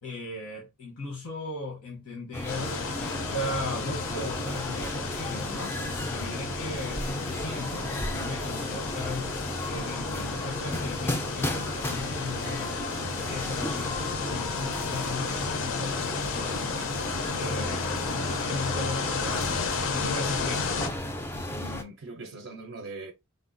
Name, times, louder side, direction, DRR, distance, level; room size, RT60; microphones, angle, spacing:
voice 1, 0.0-20.9, left 2 dB, 85° left, 0.9 m, -37 dB
sound 1, 2.3-21.8, left 1 dB, 10° left, 0.3 m, -34 dB
sound 2, 2.5-20.9, left 5 dB, 65° left, 0.5 m, -33 dB
voice 2, 21.5-23.1, right 3 dB, 55° right, 0.4 m, -41 dB
3.4 x 2.2 x 2.5 m
head